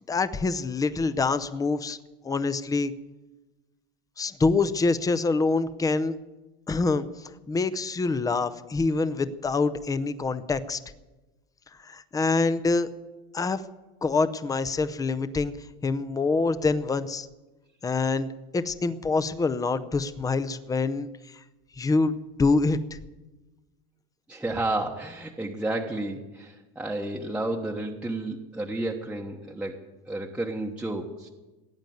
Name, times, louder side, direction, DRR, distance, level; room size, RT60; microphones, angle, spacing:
voice 1, 0.1-2.0 2.2-2.9 4.2-6.1 6.7-7.0 7.5-10.8 11.8-12.9 13.3-13.6 14.0-15.5 15.8-17.3 17.8-18.3 18.5-21.1 21.8-22.8, left 3 dB, 10° left, 13 dB, 0.7 m, -25 dB
voice 2, 24.3-31.3, right 2 dB, 5° right, -1 dB, 1.1 m, -31 dB
17.5 x 9.0 x 9.3 m, 1.1 s
supercardioid pair, 130°, 29 cm